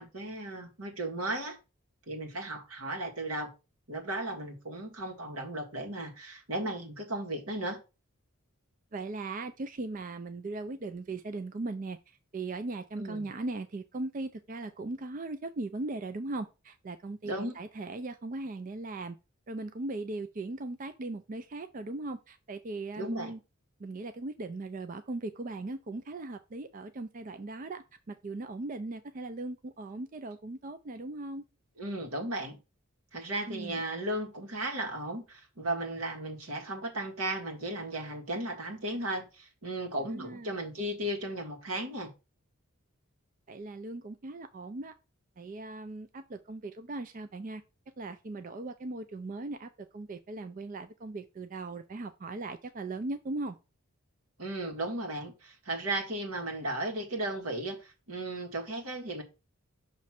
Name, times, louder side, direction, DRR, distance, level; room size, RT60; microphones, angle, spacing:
voice 1, 0.0-1.6 2.1-3.5 3.9-7.8 13.0-13.3 17.2-17.5 23.0-23.3 31.8-32.6 33.1-42.1 54.4-59.2, right 1 dB, 85° right, 1.8 m, -35 dB
voice 2, 8.9-19.2 19.5-23.4 23.8-31.4 33.5-33.8 40.0-40.5 43.5-44.9 45.4-47.6 48.0-53.6, right 2 dB, 40° right, 0.4 m, -38 dB
6.3 x 3.1 x 5.8 m
head